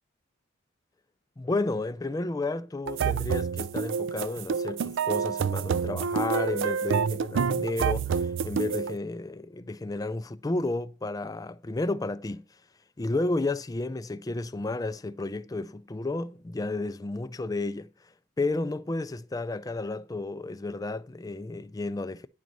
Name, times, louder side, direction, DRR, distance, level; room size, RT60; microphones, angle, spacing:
voice 1, 1.4-12.4 13.0-17.9 18.4-22.3, left 2 dB, 15° left, 0.3 m, -32 dB
sound 1, 2.9-9.0, right 6 dB, 60° right, 0.3 m, -28 dB
10.5 x 4.0 x 6.0 m
head